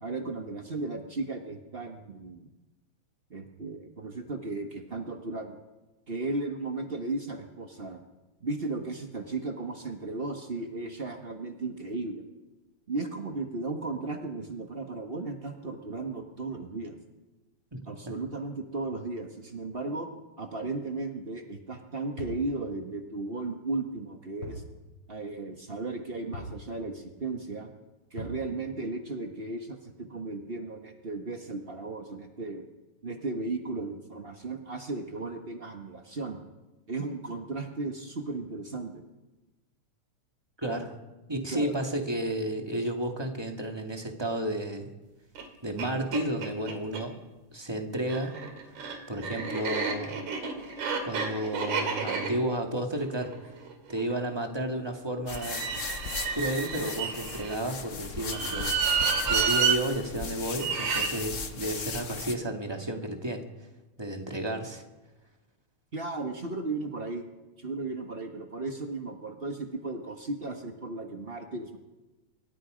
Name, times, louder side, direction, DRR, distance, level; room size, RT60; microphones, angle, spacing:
voice 1, 0.0-2.5 3.3-5.6 6.1-8.0 8.4-12.2 12.9-17.0 17.8-20.1 20.4-24.6 25.1-27.7 28.1-32.7 33.0-36.4 36.9-39.0 41.5-41.7 65.9-67.3 67.6-71.8, right 3 dB, 55° right, 3 dB, 0.6 m, -35 dB
sound 1, 22.2-22.5 24.4-24.7 25.0-25.1 26.3-26.6 28.2-28.5, equal, 45° left, 7.6 m, -39 dB
voice 2, 40.6-41.0 41.3-44.9 45.6-47.1 47.5-48.4 49.1-50.2 51.0-53.6 53.9-55.6 56.3-58.7 59.2-63.4 64.0-64.8, right 1 dB, 10° right, 3 dB, 1.8 m, -32 dB
sound 2, 45.4-45.5 45.8-45.9 46.1-47.0 48.0-54.1 55.3-57.6 58.2-59.8 60.6-61.1, right 6 dB, 70° right, 3.9 m, -30 dB
sound 3, 55.3-62.4, left 5 dB, 70° left, 0.7 m, -37 dB
26.5 x 23.5 x 5.2 m, 1.1 s
omnidirectional pair, 3.5 m